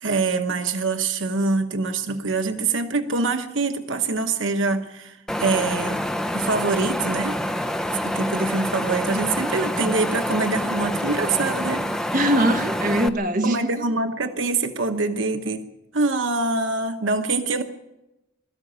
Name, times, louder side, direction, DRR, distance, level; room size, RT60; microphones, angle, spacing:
voice 1, 0.0-6.0 6.3-7.4 8.0-11.8 13.4-15.6 15.9-17.6, right 3 dB, 80° right, 7 dB, 1.1 m, -24 dB
Wind, 5.3-13.1, equal, 5° left, 0.7 m, -27 dB
voice 2, 12.1-13.8, right 1 dB, 45° right, 6 dB, 1.6 m, -22 dB
21.5 x 13.5 x 8.7 m, 0.96 s
head